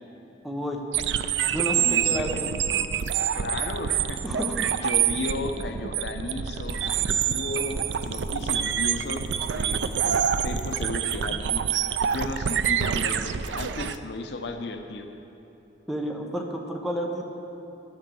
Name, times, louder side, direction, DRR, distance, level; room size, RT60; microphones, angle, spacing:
voice 1, 0.4-0.8 1.5-2.5 4.2-4.6 15.9-17.2, equal, ahead, -1 dB, 0.9 m, -30 dB
sound 1, 0.9-14.0, right 8 dB, 85° right, 0.4 m, -26 dB
voice 2, 1.7-2.4 3.3-4.2 4.7-6.8 7.1-7.8 8.0-9.2 9.5-15.1, left 2 dB, 70° left, 6 dB, 0.7 m, -34 dB
sound 2, 6.5-10.9, left 1 dB, 50° left, 2.3 m, -40 dB
10.5 x 8.9 x 6.8 m, 3.0 s
head